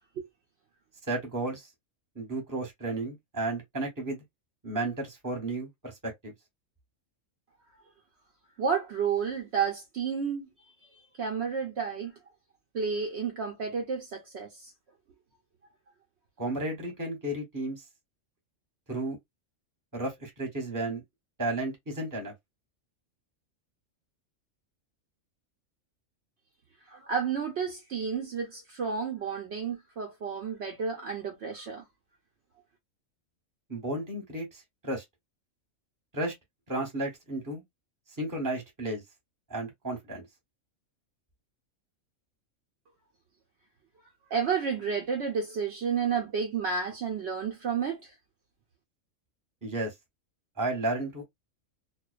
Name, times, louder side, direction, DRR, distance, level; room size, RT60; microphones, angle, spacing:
voice 1, 1.1-1.7 2.1-4.2 4.6-6.3 16.4-17.8 18.9-19.2 19.9-21.0 21.4-22.3 33.7-35.0 36.1-36.3 36.7-37.6 38.2-39.0 39.5-40.2 49.6-49.9 50.6-51.3, right 2 dB, 15° right, 0.9 m, -33 dB
voice 2, 8.6-10.5 10.9-12.1 12.7-14.7 26.9-31.8 44.3-48.1, right 6 dB, 65° right, 0.8 m, -31 dB
2.4 x 2.2 x 2.3 m
omnidirectional pair, 1.4 m